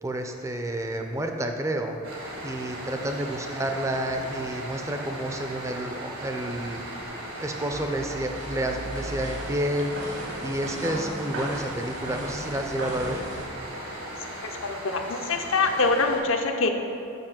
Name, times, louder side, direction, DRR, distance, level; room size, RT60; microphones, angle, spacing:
voice 1, 0.0-2.0 2.4-6.8 7.4-13.2, right 1 dB, 15° right, 4 dB, 0.5 m, -30 dB
sound 1, 2.0-16.2, right 1 dB, 80° right, 1.9 m, -38 dB
sound 2, 7.7-13.5, right 1 dB, 60° right, 1.3 m, -37 dB
voice 2, 14.4-16.7, left 3 dB, 65° left, 4 dB, 0.7 m, -25 dB
6.7 x 5.4 x 5.9 m, 2.8 s
head